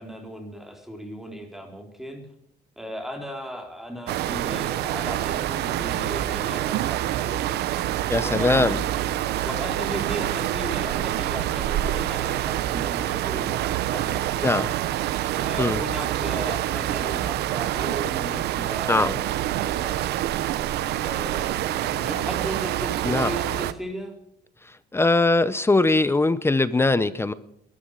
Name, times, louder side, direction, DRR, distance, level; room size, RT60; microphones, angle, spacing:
voice 1, 0.0-2.2 2.8-7.5 8.2-8.8 9.4-14.8 15.4-19.2 21.0-24.1, equal, ahead, 3 dB, 3.8 m, -36 dB
sound 1, 4.1-23.7, right 13 dB, 75° right, 1.0 m, -26 dB
voice 2, 8.1-8.8 14.4-14.7 15.6-15.8 18.9-19.2 23.0-23.3 24.6-27.3, left 2 dB, 15° left, 15 dB, 0.8 m, -21 dB
21.5 x 13.0 x 5.0 m, 0.73 s
cardioid pair, 110°, 17 cm